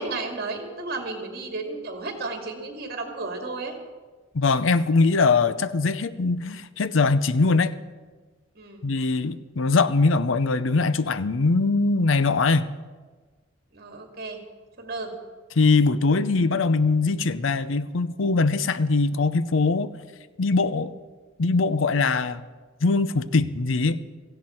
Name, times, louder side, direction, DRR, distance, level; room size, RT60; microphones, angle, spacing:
voice 1, 0.0-3.7 8.6-8.9 13.7-14.4 14.8-15.1, right 3 dB, 50° right, 3 dB, 2.3 m, -33 dB
voice 2, 4.3-7.7 8.8-12.7 15.6-19.9 20.4-20.9 21.4-22.4 22.8-24.0, left 3 dB, 70° left, 15 dB, 0.6 m, -22 dB
17.0 x 15.0 x 4.4 m, 1.4 s
head